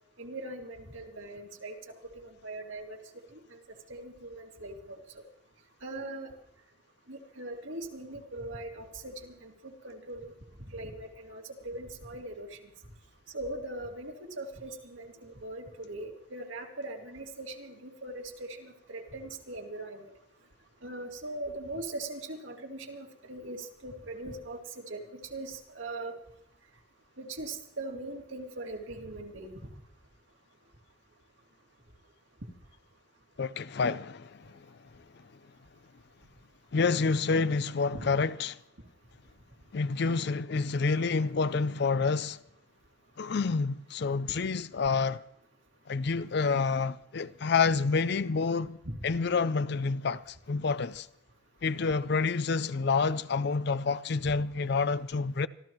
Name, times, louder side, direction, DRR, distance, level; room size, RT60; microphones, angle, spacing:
voice 1, 0.2-1.8 2.1-3.0 3.3-3.6 3.9-5.2 5.8-6.3 7.1-10.3 10.7-12.6 13.3-20.1 20.8-26.1 27.2-29.7 37.9-38.1 48.9-49.1, right 2 dB, 75° right, 2.2 m, -41 dB
voice 2, 33.4-34.4 36.7-38.6 39.7-42.4 43.2-45.2 45.9-48.8 49.0-50.2 50.5-51.1 51.6-55.5, left 4 dB, 55° left, 0.5 m, -28 dB
25.5 x 14.0 x 3.1 m
head